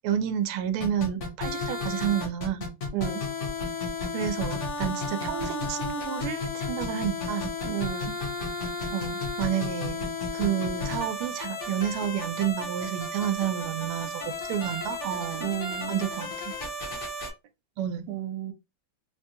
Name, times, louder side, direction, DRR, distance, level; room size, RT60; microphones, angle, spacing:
voice 1, 0.0-2.6 4.1-7.5 8.9-15.5 15.9-16.5 17.8-18.1, right 10 dB, 85° right, 1.5 m, -30 dB
sound 1, 0.8-17.3, left 3 dB, 45° left, 1.1 m, -33 dB
voice 2, 7.6-8.2 15.4-16.0 18.1-18.5, right 12 dB, 70° right, 1.1 m, -32 dB
3.9 x 2.2 x 2.8 m
omnidirectional pair, 2.4 m